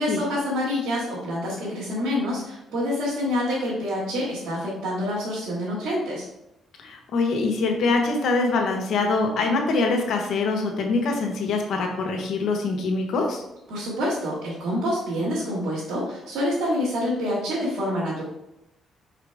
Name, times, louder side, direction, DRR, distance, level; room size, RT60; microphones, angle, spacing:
voice 1, 0.0-6.3 13.7-18.2, left 1 dB, 75° right, -9 dB, 2.3 m, -27 dB
voice 2, 6.8-13.4, left 3 dB, 70° left, 2 dB, 1.3 m, -24 dB
5.9 x 4.9 x 3.6 m, 0.86 s
cardioid pair, 90°, 0 cm